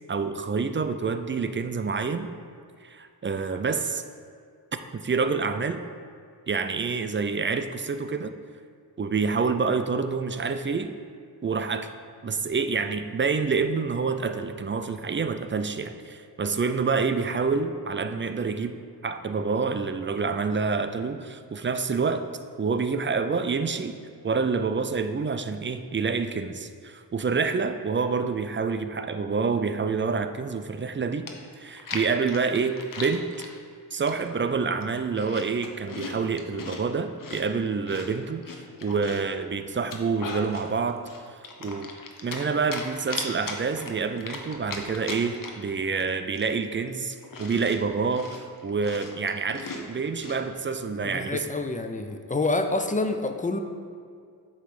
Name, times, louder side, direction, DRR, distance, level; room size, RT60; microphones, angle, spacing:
voice 1, 0.1-2.3 2.8-4.0 4.9-5.8 6.5-8.3 9.0-10.9 11.4-11.9 12.2-18.8 19.0-22.3 22.6-24.0 24.2-31.3 31.6-33.3 33.9-41.0 41.6-41.9 42.2-51.4, right 5 dB, 30° right, 9 dB, 0.4 m, -27 dB
Chewing mastication, 30.9-31.0 31.3-33.5 34.1-34.4 34.8-36.8 37.2-39.3 39.7-40.7 41.0-42.5 42.7-45.7 46.0-46.1 46.4-50.4, left 4 dB, 55° left, 0.9 m, -38 dB
voice 2, 51.0-53.6, left 2 dB, 20° left, 6 dB, 0.5 m, -27 dB
8.2 x 3.2 x 6.0 m, 2.2 s
cardioid pair, 60°, 41 cm